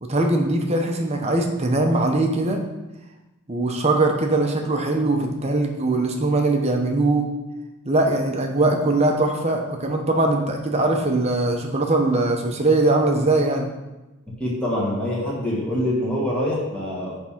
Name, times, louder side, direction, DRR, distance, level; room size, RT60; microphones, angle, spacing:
voice 1, 0.0-2.6 3.5-7.3 7.8-13.7, right 2 dB, 30° right, 2 dB, 0.9 m, -21 dB
voice 2, 14.4-17.2, left 1 dB, 5° left, -6 dB, 1.7 m, -25 dB
9.6 x 3.6 x 5.8 m, 1.1 s
head